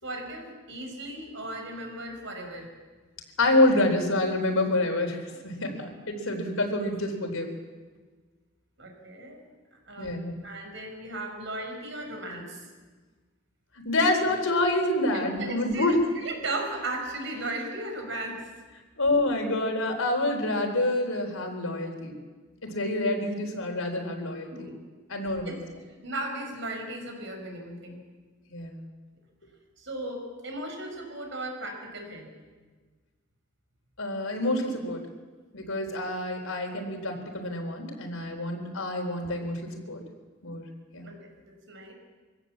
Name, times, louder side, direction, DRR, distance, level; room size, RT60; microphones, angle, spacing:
voice 1, 0.0-2.7 8.8-9.4 9.7-10.1 10.4-12.7 15.3-18.4 24.5-24.8 25.4-25.6 26.0-28.0 29.8-32.3 38.4-38.5 41.0-41.9, right 2 dB, 60° right, 3 dB, 5.1 m, -36 dB
voice 2, 3.4-7.5 10.0-10.4 13.8-16.0 19.0-22.1 22.6-24.7 25.1-25.5 28.5-28.8 34.0-35.0 35.5-40.0 40.4-40.6 40.9-41.1, left 1 dB, 85° left, 3 dB, 4.1 m, -27 dB
24.5 x 17.0 x 7.4 m, 1.4 s
head